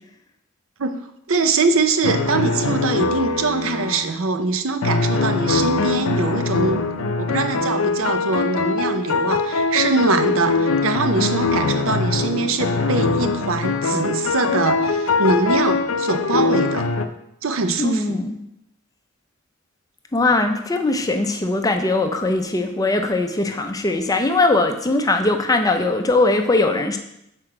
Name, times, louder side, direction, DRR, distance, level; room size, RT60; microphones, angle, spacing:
voice 1, 1.3-6.8 7.2-16.9 17.4-18.2, right 3 dB, 65° right, 8 dB, 0.6 m, -23 dB
sound 1, 2.0-4.0 4.8-17.0, left 4 dB, 80° left, 0.5 m, -22 dB
voice 2, 17.8-18.4 20.1-27.0, left 2 dB, 15° left, 5 dB, 0.5 m, -20 dB
6.3 x 4.4 x 4.8 m, 0.81 s
head